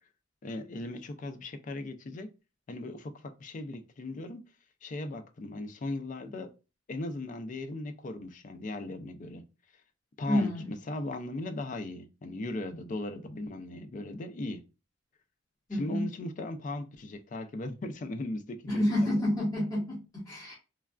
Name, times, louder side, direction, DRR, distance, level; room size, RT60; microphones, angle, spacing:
voice 1, 0.4-2.3 2.7-4.4 4.8-6.5 6.9-9.4 10.2-14.6 15.7-19.2, left 2 dB, 40° left, 0.4 m, -38 dB
voice 2, 10.3-10.7 15.7-16.1 18.7-20.5, left 1 dB, 20° left, 1.3 m, -29 dB
3.2 x 2.3 x 2.3 m
head